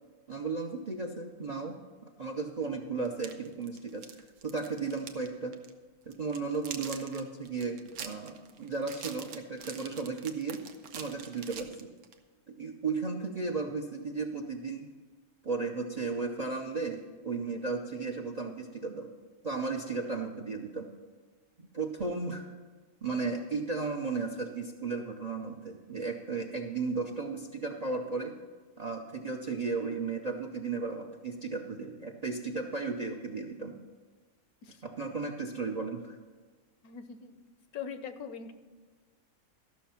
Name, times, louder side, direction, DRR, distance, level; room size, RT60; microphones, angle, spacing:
voice 1, 0.3-1.8 2.0-4.0 4.4-5.6 6.1-10.6 10.9-11.9 12.5-14.9 15.4-19.1 19.4-20.9 21.6-22.5 23.0-28.3 28.8-33.7 34.8-36.2, right 4 dB, 45° right, 4 dB, 0.5 m, -35 dB
sound 1, 3.1-5.3 5.5-5.7 6.1-12.2, right 7 dB, 90° right, 1.2 m, -45 dB
voice 2, 36.8-37.4 37.7-38.5, left 7 dB, 80° left, 10 dB, 1.2 m, -42 dB
13.5 x 6.2 x 5.8 m, 1.4 s
omnidirectional pair, 1.5 m